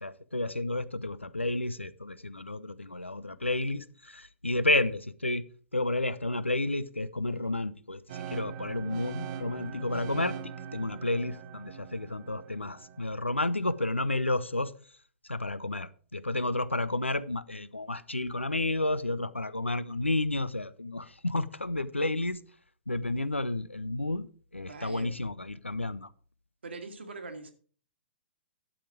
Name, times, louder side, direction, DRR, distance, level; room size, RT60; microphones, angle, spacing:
voice 1, 0.0-5.4 5.7-10.4 10.7-14.7 15.3-22.4 22.9-24.3 24.5-26.1, left 2 dB, 85° left, 0.7 m, -31 dB
sound 1, 8.1-14.0, right 8 dB, 40° right, 0.9 m, -42 dB
voice 2, 24.7-25.2 26.6-27.5, right 3 dB, 70° right, 1.8 m, -42 dB
12.0 x 7.2 x 4.8 m
figure-of-eight pair, 115°, 6 cm